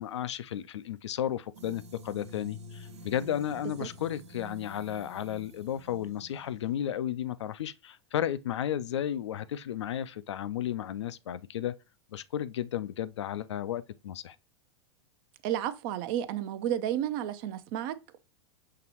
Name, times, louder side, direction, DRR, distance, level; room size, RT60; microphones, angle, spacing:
voice 1, 0.0-11.7 12.1-14.4, left 10 dB, 85° left, 0.4 m, -33 dB
sound 1, 1.5-6.8, equal, 80° right, 1.0 m, -49 dB
voice 2, 15.4-18.2, right 11 dB, 55° right, 0.5 m, -32 dB
5.8 x 3.0 x 2.9 m
hypercardioid pair, 105°, 14 cm